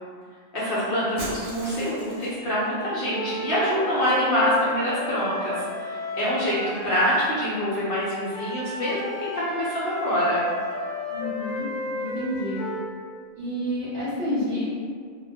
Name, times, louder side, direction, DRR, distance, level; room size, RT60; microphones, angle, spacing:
voice 1, 0.5-10.5, equal, 60° left, -9 dB, 0.8 m, -25 dB
Shatter, 1.2-2.5, right 1 dB, 65° right, 0.8 m, -37 dB
sound 1, 3.1-7.4 8.3-12.9, left 1 dB, ahead, 0.7 m, -33 dB
voice 2, 11.1-11.7 12.0-12.6 13.4-14.6, left 1 dB, 30° right, -13 dB, 0.9 m, -29 dB
2.1 x 2.0 x 3.3 m, 2.1 s
omnidirectional pair, 1.1 m